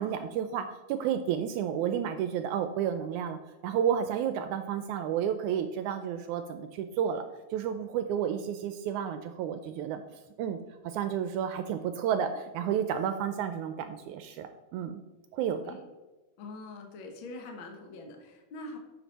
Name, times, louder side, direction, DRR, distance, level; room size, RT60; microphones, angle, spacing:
voice 1, 0.0-3.4 3.6-7.2 7.5-10.0 10.4-10.6 10.8-15.0 15.3-15.8, right 8 dB, 80° right, 9 dB, 1.8 m, -31 dB
voice 2, 16.4-18.8, left 2 dB, 55° left, 3 dB, 1.4 m, -43 dB
9.3 x 7.1 x 4.1 m, 1.1 s
omnidirectional pair, 3.7 m